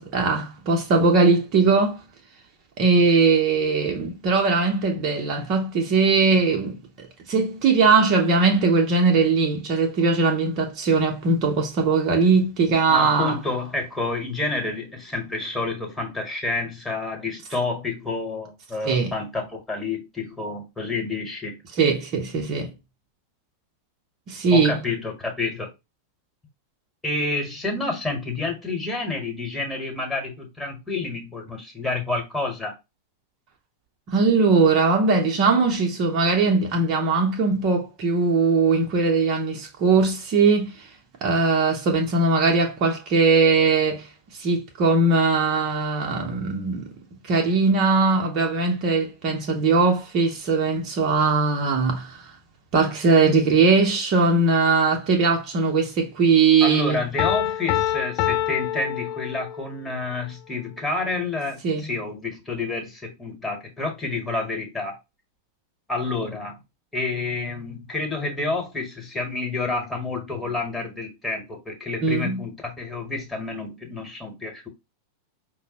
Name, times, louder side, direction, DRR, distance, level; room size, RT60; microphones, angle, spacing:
voice 1, 0.0-2.0 2.8-13.4 18.8-19.1 21.8-22.7 24.3-24.8 34.1-40.8 41.2-44.1 44.4-46.9 47.3-52.2 52.7-57.0 61.6-61.9 72.0-72.4, right 4 dB, 40° right, 0.7 m, -20 dB
voice 2, 12.9-21.6 24.5-25.7 27.0-32.7 56.6-65.0 65.9-66.6 66.9-74.7, left 3 dB, 10° left, 1.2 m, -29 dB
Piano, 57.2-59.8, left 12 dB, 45° left, 0.3 m, -25 dB
5.1 x 2.0 x 2.8 m
figure-of-eight pair, 90°, 0 cm